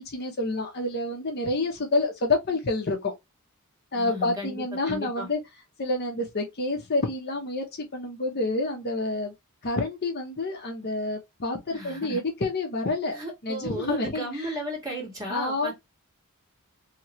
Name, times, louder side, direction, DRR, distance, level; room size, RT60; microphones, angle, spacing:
voice 1, 0.0-3.1 3.9-5.4 5.8-9.3 9.6-14.6 15.3-15.7, left 2 dB, 45° left, 0.8 m, -28 dB
voice 2, 4.0-5.3 11.7-12.2 13.1-15.7, right 1 dB, 15° right, 1.9 m, -35 dB
3.0 x 2.9 x 3.0 m
head